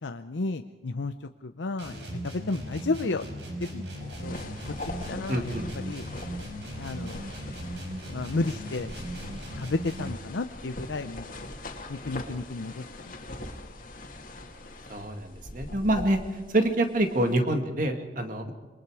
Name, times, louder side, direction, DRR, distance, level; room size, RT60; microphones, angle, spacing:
voice 1, 0.0-1.1 1.4-2.0 2.2-3.3 3.6-3.8 4.2-4.4 5.1-5.5 5.9-6.0 6.8-7.2 8.1-8.9 9.6-11.3 11.9-13.1, left 3 dB, 90° left, 7 dB, 0.7 m, -32 dB
sound 1, 1.8-10.3, equal, 75° right, 5.5 m, -38 dB
sound 2, 4.0-17.4, left 2 dB, 50° left, 2.3 m, -42 dB
voice 2, 5.3-5.6 14.9-16.2 16.5-18.5, right 1 dB, 45° right, 5 dB, 2.1 m, -26 dB
27.0 x 22.5 x 4.9 m, 1.3 s
head